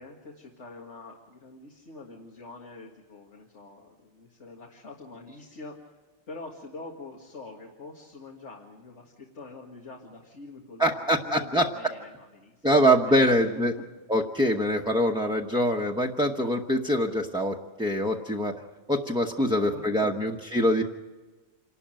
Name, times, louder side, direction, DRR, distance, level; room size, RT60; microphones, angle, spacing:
voice 1, 0.0-5.9 6.3-13.2 13.8-13.9 19.4-20.4, left 3 dB, 75° left, 0 dB, 2.2 m, -45 dB
voice 2, 10.8-11.7 12.6-13.7 14.1-18.5 18.9-20.8, equal, 5° right, 1 dB, 0.9 m, -24 dB
27.5 x 12.5 x 9.0 m, 1.2 s
omnidirectional pair, 1.2 m